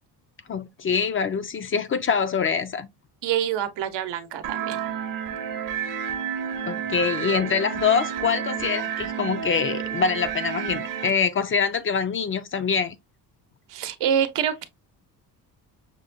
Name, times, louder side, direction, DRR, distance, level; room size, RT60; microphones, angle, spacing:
voice 1, 0.5-2.9 6.7-13.0, left 6 dB, 35° left, 0.4 m, -25 dB
voice 2, 3.2-4.8 13.7-14.6, right 9 dB, 85° right, 0.8 m, -26 dB
sound 1, 4.4-11.1, right 8 dB, 55° right, 0.7 m, -30 dB
6.1 x 2.1 x 2.5 m
cardioid pair, 135°, 41 cm